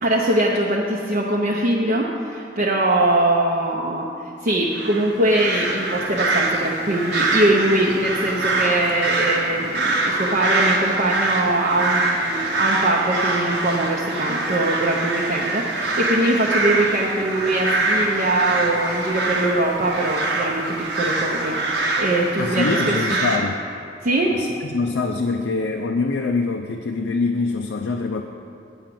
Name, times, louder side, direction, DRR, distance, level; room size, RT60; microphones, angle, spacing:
voice 1, 0.0-4.1 4.4-21.6 22.0-23.0 24.0-24.4, right 1 dB, 45° right, -3 dB, 0.7 m, -22 dB
sound 1, 4.7-23.4, right 2 dB, 75° right, 1.0 m, -24 dB
voice 2, 22.4-23.6 24.3-28.2, left 3 dB, 90° left, 3 dB, 0.5 m, -24 dB
9.0 x 4.9 x 7.6 m, 2.6 s
head